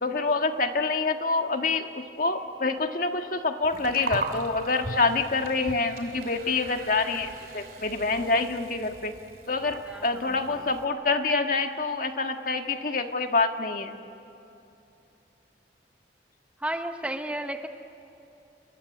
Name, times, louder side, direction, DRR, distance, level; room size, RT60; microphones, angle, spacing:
voice 1, 0.0-9.1 9.5-13.9, left 3 dB, 45° left, 5 dB, 1.6 m, -26 dB
Gurgling, 3.6-10.8, right 2 dB, 50° right, 2.8 m, -40 dB
voice 2, 9.9-10.3 16.6-17.7, right 1 dB, 5° right, 6 dB, 0.9 m, -33 dB
29.5 x 21.0 x 8.4 m, 2.9 s
head